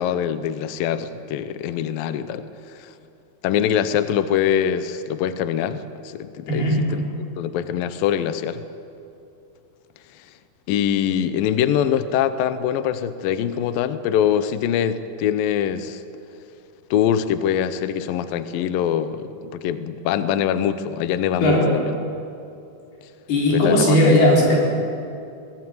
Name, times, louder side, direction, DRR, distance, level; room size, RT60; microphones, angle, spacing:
voice 1, 0.0-3.0 3.4-6.7 6.9-7.0 7.4-8.6 10.7-16.0 16.9-22.0 23.5-24.0, left 9 dB, 80° left, 12 dB, 2.0 m, -23 dB
voice 2, 6.5-6.8 21.4-21.7 23.3-24.6, left 1 dB, 60° left, -2 dB, 6.4 m, -17 dB
21.5 x 19.0 x 9.5 m, 2.6 s
omnidirectional pair, 5.2 m